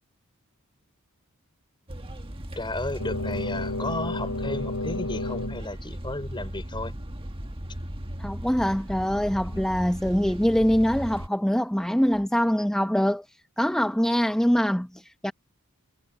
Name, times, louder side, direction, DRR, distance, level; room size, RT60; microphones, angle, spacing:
sound 1, 1.9-11.3, equal, 25° right, 1.7 m, -37 dB
voice 1, 2.6-6.9 9.5-9.7, left 2 dB, 20° left, 5.2 m, -33 dB
sound 2, 3.0-5.7, left 2 dB, 80° left, 4.2 m, -31 dB
voice 2, 8.2-13.2 13.6-15.3, equal, 5° left, 0.7 m, -24 dB
head